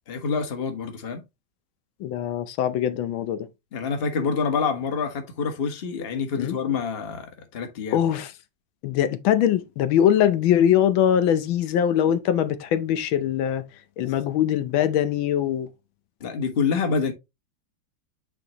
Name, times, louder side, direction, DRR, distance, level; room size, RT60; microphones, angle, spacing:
voice 1, 0.1-1.2 3.7-8.0 16.2-17.1, left 5 dB, 35° left, 1.2 m, -27 dB
voice 2, 2.0-3.5 6.4-6.6 7.9-8.3 8.8-13.6 14.0-15.7, left 10 dB, 85° left, 1.5 m, -22 dB
8.7 x 3.9 x 2.9 m
omnidirectional pair, 2.1 m